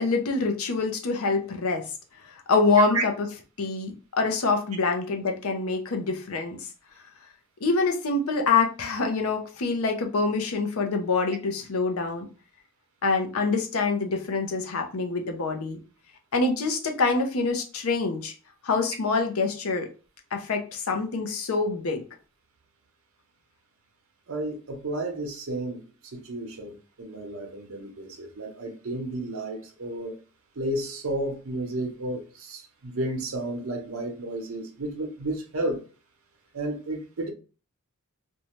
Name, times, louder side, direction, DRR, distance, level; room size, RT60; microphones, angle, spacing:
voice 1, 0.0-1.8 2.3-3.3 3.6-6.7 7.6-12.3 13.0-15.8 16.3-18.3 18.6-19.9 20.3-22.0, left 3 dB, 80° left, 0.6 m, -25 dB
voice 2, 24.3-30.2 30.6-35.8 36.5-37.3, right 1 dB, 75° right, 0.7 m, -32 dB
2.6 x 2.2 x 3.0 m
head